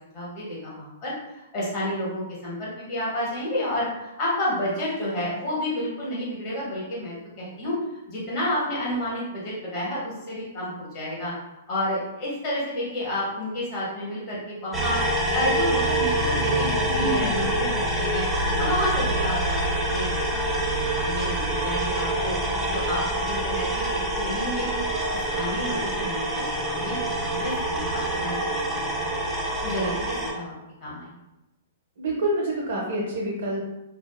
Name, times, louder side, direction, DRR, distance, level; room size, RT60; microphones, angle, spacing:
voice 1, 0.1-7.8 8.1-11.3 11.7-19.6 19.9-20.7 20.9-22.4 22.7-24.8 25.1-29.2 29.6-30.5 30.8-31.2, left 1 dB, 40° left, -6 dB, 1.3 m, -30 dB
sound 1, 14.7-30.3, right 1 dB, 10° right, 0.5 m, -26 dB
voice 2, 16.8-17.2 32.0-33.6, right 1 dB, 70° right, -4 dB, 0.7 m, -27 dB
2.5 x 2.5 x 2.3 m, 0.96 s
hypercardioid pair, 145°, 0 cm